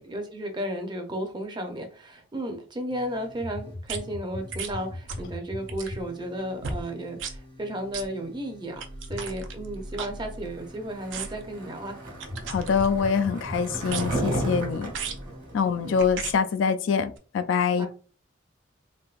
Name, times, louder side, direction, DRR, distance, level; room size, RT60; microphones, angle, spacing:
voice 1, 0.0-8.8 9.1-12.0 15.8-16.0 17.8-17.9, right 1 dB, 25° right, 4 dB, 0.6 m, -34 dB
sound 1, 2.9-16.0, left 1 dB, 25° left, 0.6 m, -43 dB
sound 2, 3.9-4.0 4.5-4.8 5.1-5.3 5.6-6.0 6.6-6.8 7.2-7.4 7.9-8.1 8.8-10.7 11.1-11.5 12.2-13.2 13.9-14.3 14.9-15.3 16.0-16.4 17.2-17.3, right 5 dB, 70° right, 0.5 m, -36 dB
Skateboard, 10.9-16.3, right 1 dB, 45° right, 1.1 m, -33 dB
voice 2, 12.5-14.9 15.5-17.9, left 6 dB, 70° left, 10 dB, 0.3 m, -25 dB
3.5 x 2.6 x 2.4 m, 0.39 s
head